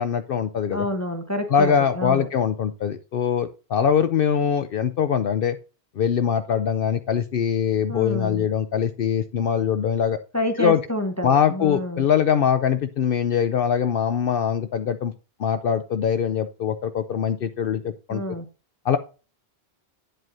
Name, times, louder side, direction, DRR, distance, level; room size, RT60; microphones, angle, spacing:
voice 1, 0.0-0.9 1.5-5.6 6.0-10.2 10.6-10.8 11.2-15.1 15.4-18.2 18.8-19.0, left 8 dB, 60° left, 10 dB, 0.8 m, -22 dB
voice 2, 0.7-2.3 7.9-8.5 10.3-12.1 18.1-18.4, equal, 15° left, 5 dB, 0.9 m, -28 dB
9.2 x 7.6 x 2.6 m, 0.34 s
omnidirectional pair, 1.1 m